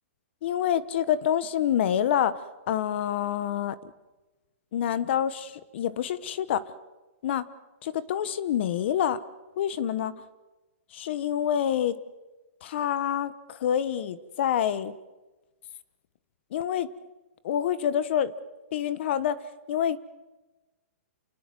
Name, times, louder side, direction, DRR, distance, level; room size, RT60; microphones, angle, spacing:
voice 1, 0.4-2.4 2.7-3.8 4.7-6.6 7.2-7.4 7.8-9.2 9.6-10.1 10.9-12.0 12.6-14.9 16.5-16.9 17.4-18.3 18.7-19.4 19.7-20.0, left 10 dB, 50° left, 17 dB, 1.1 m, -27 dB
28.5 x 20.5 x 7.7 m, 1.1 s
hypercardioid pair, 155°, 8 cm